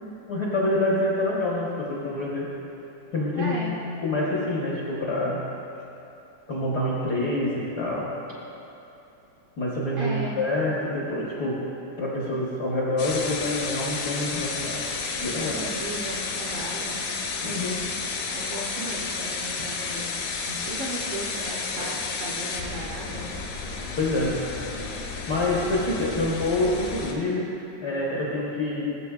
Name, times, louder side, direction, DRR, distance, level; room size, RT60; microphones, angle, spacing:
voice 1, 0.0-2.5 3.1-3.6 4.0-5.5 6.5-8.1 9.6-11.7 12.0-14.8 15.1-15.6 17.4-17.9 21.7-21.9 24.0-24.6 25.3-27.5 27.8-28.9, left 1 dB, 65° left, -5 dB, 0.9 m, -27 dB
voice 2, 3.3-3.8 10.0-10.4 15.4-17.2 18.3-20.1 20.5-23.4, right 2 dB, 70° right, -4 dB, 1.5 m, -36 dB
sound 1, 13.0-27.1, left 4 dB, 85° left, 2.4 m, -32 dB
17.5 x 7.2 x 2.4 m, 2.9 s
omnidirectional pair, 3.4 m